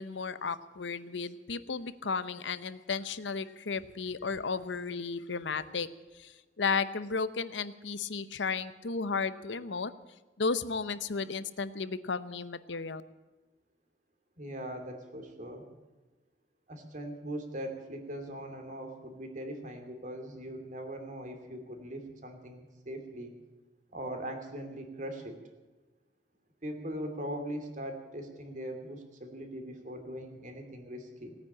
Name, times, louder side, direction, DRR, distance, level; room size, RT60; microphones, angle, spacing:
voice 1, 0.0-5.9 6.1-9.9 10.4-13.0, left 4 dB, 90° left, 14 dB, 0.8 m, -34 dB
voice 2, 14.4-15.6 16.7-23.4 23.9-25.4 26.6-31.4, right 1 dB, 45° right, 5 dB, 2.7 m, -40 dB
17.5 x 9.6 x 8.6 m, 1.2 s
head